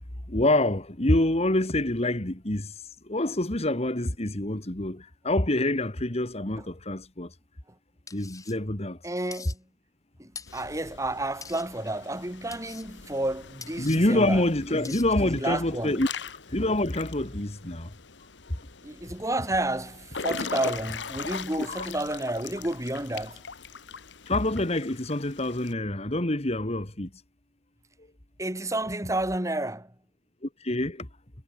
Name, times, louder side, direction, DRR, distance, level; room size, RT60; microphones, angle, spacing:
voice 1, 0.3-2.7 3.1-7.3 8.1-9.0 13.8-16.1 16.5-17.9 21.7-21.9 24.3-27.1 30.6-31.1, left 1 dB, 35° left, 2.1 m, -26 dB
sound 1, 8.1-8.5 9.3-9.6 10.3-10.7 11.4-11.7 12.5-12.9 13.6-14.0 14.8-15.1, left 5 dB, 20° left, 2.0 m, -43 dB
voice 2, 9.0-9.7 10.2-16.0 18.8-23.4 28.4-29.9, right 1 dB, 20° right, 4.5 m, -31 dB
Water / Splash splatter / Drip, 10.5-25.7, left 5 dB, 85° left, 1.5 m, -41 dB
head